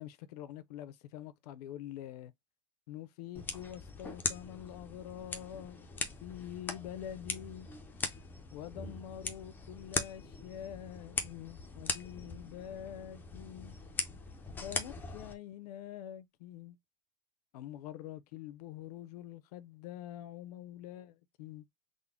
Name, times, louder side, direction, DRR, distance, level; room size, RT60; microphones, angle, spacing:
voice 1, 0.0-2.3 2.9-5.9 6.2-7.7 8.5-13.8 14.6-16.8 17.5-21.6, left 11 dB, 85° left, 0.6 m, -46 dB
sound 1, 3.4-15.4, left 4 dB, 10° left, 0.4 m, -41 dB
3.7 x 2.1 x 3.4 m
supercardioid pair, 165°, 20 cm